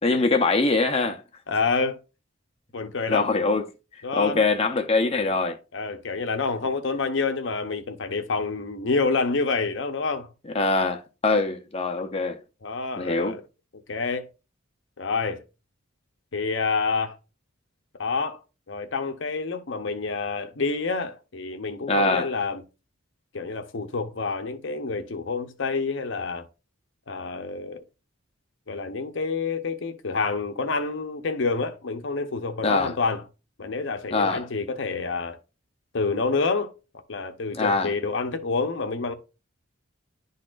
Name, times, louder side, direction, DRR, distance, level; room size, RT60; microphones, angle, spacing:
voice 1, 0.0-1.2 3.1-3.6 4.1-5.6 10.5-12.4 13.0-13.3 21.9-22.3 32.6-32.9 34.1-34.5 37.5-37.9, left 3 dB, 30° left, 0.7 m, -23 dB
voice 2, 1.5-2.0 2.7-3.3 4.0-4.5 5.7-10.3 12.6-13.4 13.9-14.3 15.0-15.4 16.3-17.2 18.0-18.4 18.7-22.6 23.3-26.5 27.1-27.8 28.7-33.2 33.6-35.4 35.9-36.7 37.1-39.1, left 4 dB, 65° left, 0.7 m, -28 dB
11.0 x 4.1 x 2.5 m
head